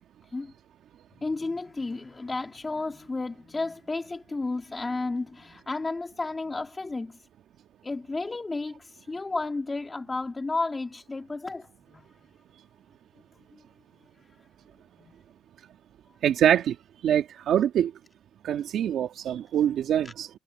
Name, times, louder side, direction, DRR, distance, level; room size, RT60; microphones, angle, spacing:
voice 1, 1.2-7.2 7.8-12.1 15.0-15.2 20.0-20.1, left 3 dB, 25° left, 4.0 m, -32 dB
voice 2, 16.2-16.8 17.0-17.9 18.4-20.3, right 10 dB, 70° right, 2.4 m, -24 dB
cardioid pair, 90°, 0 cm